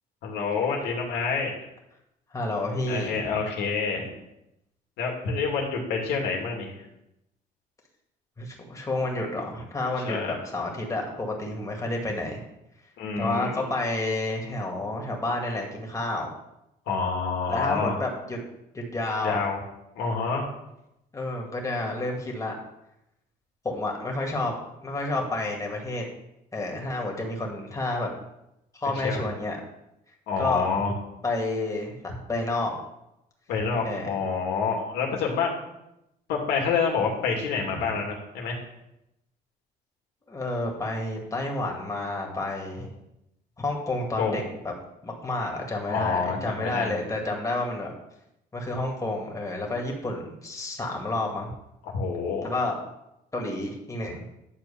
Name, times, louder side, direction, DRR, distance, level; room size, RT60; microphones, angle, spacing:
voice 1, 0.2-1.5 2.9-4.0 5.0-6.8 10.0-10.3 13.0-13.7 16.9-18.0 19.2-19.6 20.0-20.4 29.0-29.2 30.3-30.9 33.5-35.5 36.3-38.6 44.2-44.4 45.9-46.9 51.9-52.5, left 5 dB, 85° left, 0 dB, 2.5 m, -27 dB
voice 2, 2.3-3.4 8.4-12.4 13.2-16.3 17.5-18.4 18.7-19.4 21.1-22.5 23.6-24.5 24.8-26.1 26.5-28.1 28.7-29.6 30.4-30.7 31.2-32.8 33.8-34.1 37.7-37.8 40.3-42.9 43.6-44.7 45.0-47.9 48.5-51.5 52.4-52.8 53.3-54.2, left 2 dB, 20° left, 0 dB, 2.3 m, -30 dB
11.0 x 4.4 x 7.1 m, 0.86 s
cardioid pair, 110°, 17 cm